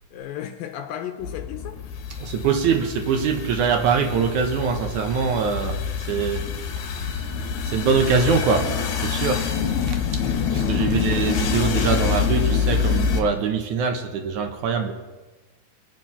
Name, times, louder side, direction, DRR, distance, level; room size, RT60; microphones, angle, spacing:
voice 1, 0.1-1.8 10.8-11.2, left 10 dB, 80° left, 6 dB, 2.4 m, -34 dB
sound 1, 1.2-13.2, left 6 dB, 60° left, 2.3 m, -26 dB
voice 2, 2.2-6.5 6.8-7.2 7.7-9.5 9.9-10.2 10.5-14.9, right 6 dB, 70° right, 6 dB, 2.0 m, -23 dB
22.0 x 9.4 x 5.5 m, 1.2 s
omnidirectional pair, 4.4 m